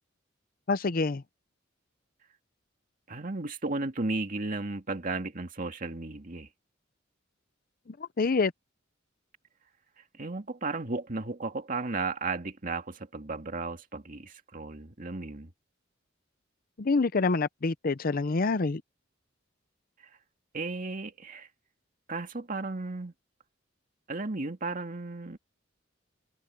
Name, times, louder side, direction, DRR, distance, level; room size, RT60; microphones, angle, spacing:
voice 1, 0.7-1.2 8.2-8.5 16.8-18.8, left 3 dB, 50° left, 0.6 m, -26 dB
voice 2, 3.1-6.5 10.2-15.5 20.5-21.5 22.1-23.1 24.1-25.4, right 3 dB, 45° right, 2.2 m, -34 dB
head